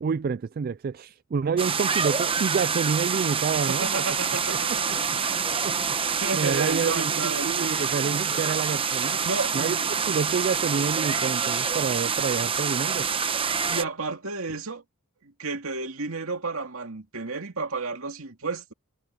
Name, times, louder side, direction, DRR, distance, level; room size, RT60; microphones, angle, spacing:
voice 1, 0.0-4.0 4.5-5.0 5.6-6.0 6.3-9.2 9.5-9.8 10.1-13.1, right 5 dB, 40° right, 0.3 m, -28 dB
sound 1, 1.6-13.8, right 6 dB, 25° right, 0.9 m, -26 dB
voice 2, 3.3-5.0 5.3-5.4 5.8-7.7 9.2-10.2 13.7-14.8 15.2-18.7, right 4 dB, 70° right, 2.4 m, -32 dB
head